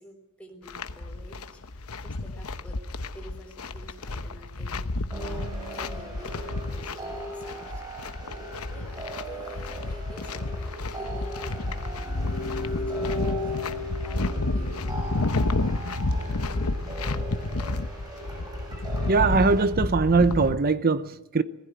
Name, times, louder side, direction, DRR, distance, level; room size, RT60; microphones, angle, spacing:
voice 1, 0.0-2.8 3.1-7.8 8.7-15.0, equal, 5° left, 3.9 m, -48 dB
sound 1, 0.7-20.6, left 2 dB, 75° left, 1.0 m, -31 dB
sound 2, 5.1-19.7, equal, 20° right, 6.9 m, -37 dB
voice 2, 19.1-21.4, right 4 dB, 45° right, 0.7 m, -21 dB
19.5 x 15.5 x 9.4 m
head